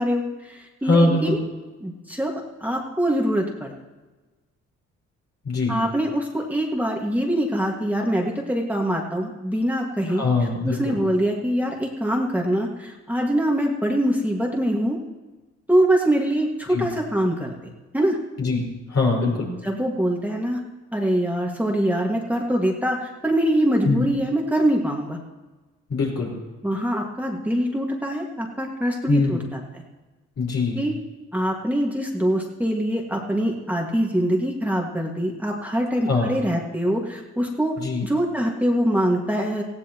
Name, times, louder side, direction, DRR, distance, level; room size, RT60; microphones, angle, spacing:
voice 1, 0.0-1.4 1.8-2.3 2.6-3.7 5.7-10.2 10.6-15.0 15.7-18.2 19.2-20.6 20.9-25.2 26.6-29.8 30.7-30.9 31.3-37.7 38.0-39.6, equal, 5° right, -1 dB, 1.9 m, -24 dB
voice 2, 0.8-1.4 5.4-5.8 10.1-11.0 16.7-16.8 18.4-18.6 18.9-19.5 23.8-24.0 25.9-26.3 29.1-29.4 30.4-30.8 36.1-36.3 37.8-38.0, left 3 dB, 60° left, -2 dB, 5.1 m, -22 dB
18.5 x 15.5 x 3.0 m, 1.2 s
cardioid pair, 90°, 30 cm